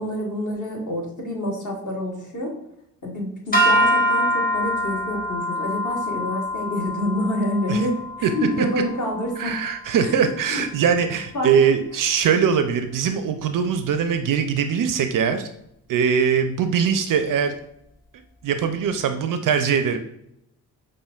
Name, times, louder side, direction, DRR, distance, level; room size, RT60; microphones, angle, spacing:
voice 1, 0.0-2.5 3.0-9.5 10.0-10.6 11.3-11.5, left 1 dB, 45° left, -1 dB, 1.4 m, -27 dB
sound 1, 3.5-9.9, equal, 20° left, 1.2 m, -25 dB
voice 2, 9.4-15.5 15.9-17.6 18.4-20.0, right 7 dB, 50° right, 8 dB, 0.4 m, -21 dB
5.5 x 2.6 x 2.3 m, 0.78 s
supercardioid pair, 50°, 43 cm